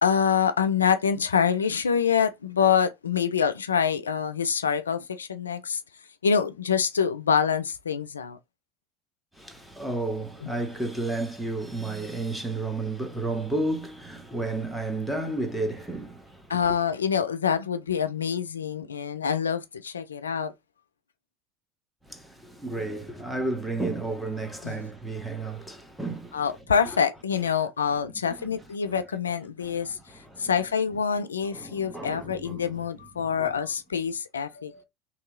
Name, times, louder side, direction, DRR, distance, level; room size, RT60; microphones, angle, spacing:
voice 1, 0.0-5.8 6.2-8.4 16.5-20.5 24.6-24.8 26.3-30.0 30.4-34.8, left 7 dB, 90° left, 0.3 m, -26 dB
voice 2, 9.3-16.6 22.0-26.5 26.8-27.0 27.9-28.0 28.4-28.5 28.9-29.0 29.6-30.5 31.5-32.7 33.4-33.5, right 2 dB, 5° right, 1.2 m, -32 dB
3.1 x 2.8 x 3.7 m
hypercardioid pair, 75°, 0 cm